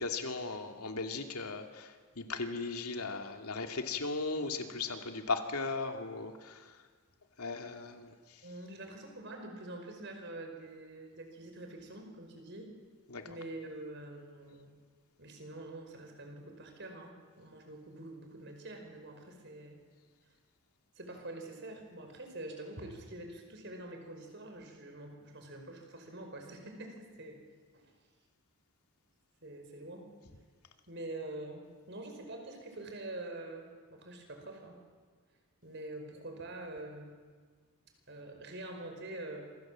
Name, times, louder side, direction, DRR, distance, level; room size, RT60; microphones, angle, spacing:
voice 1, 0.0-6.8 7.4-8.4 13.1-13.3, left 3 dB, 85° left, 5 dB, 2.7 m, -37 dB
voice 2, 8.4-12.7 13.2-14.8 15.2-19.8 21.0-27.4 27.7-27.9 29.4-30.1 30.9-34.8 35.6-37.2 38.1-39.5, right 2 dB, 50° right, 4 dB, 5.3 m, -45 dB
27.5 x 26.0 x 7.6 m, 1.5 s
head